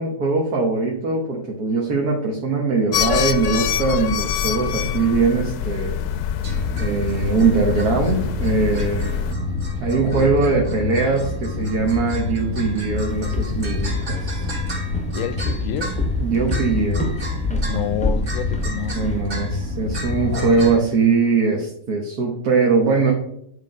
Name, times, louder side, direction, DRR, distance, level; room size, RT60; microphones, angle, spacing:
voice 1, 0.0-6.0 6.8-9.2 9.8-14.5 16.2-17.1 17.5-17.9 18.9-23.1, right 4 dB, 85° right, 1.8 m, -21 dB
sound 1, 2.9-9.3, left 9 dB, 90° left, 1.1 m, -25 dB
sound 2, 6.4-20.8, left 2 dB, 45° right, 2.1 m, -27 dB
voice 2, 10.1-10.4 15.1-15.9 17.6-19.0, left 10 dB, 65° left, 0.9 m, -29 dB
Walk footsteps, 13.1-19.2, left 3 dB, 5° left, 0.6 m, -27 dB
9.7 x 4.0 x 5.2 m
omnidirectional pair, 1.6 m